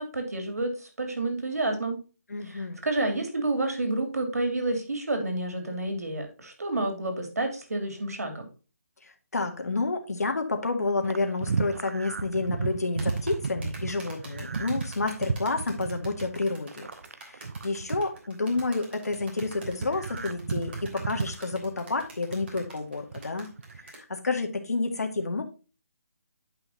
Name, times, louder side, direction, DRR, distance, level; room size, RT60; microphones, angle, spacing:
voice 1, 0.0-2.0 2.5-8.4, right 2 dB, 80° right, 5 dB, 3.0 m, -29 dB
voice 2, 2.3-2.8 9.0-16.9 17.2-23.5 23.7-25.5, left 3 dB, 85° left, 4 dB, 1.9 m, -30 dB
sound 1, 11.0-18.8 19.1-22.7 23.0-23.9, right 5 dB, 65° right, 0.6 m, -34 dB
sound 2, 13.0-24.0, right 2 dB, 40° right, 3.1 m, -46 dB
11.0 x 5.6 x 2.7 m, 0.33 s
hypercardioid pair, 160°, 8 cm